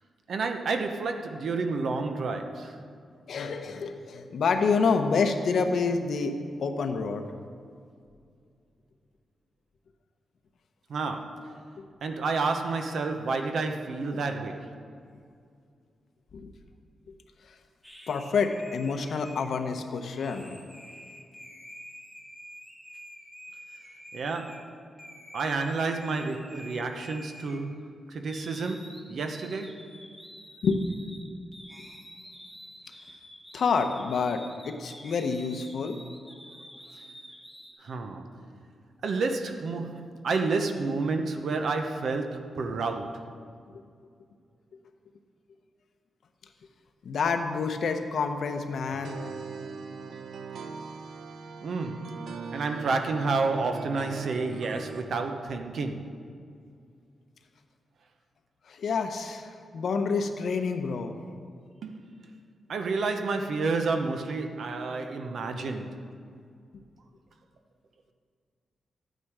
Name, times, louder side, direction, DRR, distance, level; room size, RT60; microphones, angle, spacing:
voice 1, 0.3-2.8 10.9-11.6 12.0-14.8 24.1-24.8 25.3-29.9 37.8-38.4 39.0-43.3 51.6-56.2 61.8-62.0 62.7-66.0, right 3 dB, 60° right, 0.8 m, -30 dB
voice 2, 3.3-7.2 11.8-11.9 16.3-16.5 18.1-20.6 30.6-30.9 33.5-36.0 47.0-49.2 58.7-61.1, left 5 dB, 65° left, 0.9 m, -28 dB
sound 1, 17.8-24.6 25.0-27.9 28.2-37.7, equal, 5° right, 1.3 m, -48 dB
sound 2, 48.9-55.0, right 5 dB, 90° right, 0.8 m, -41 dB
12.5 x 9.2 x 4.8 m
wide cardioid pair, 165°, 0 cm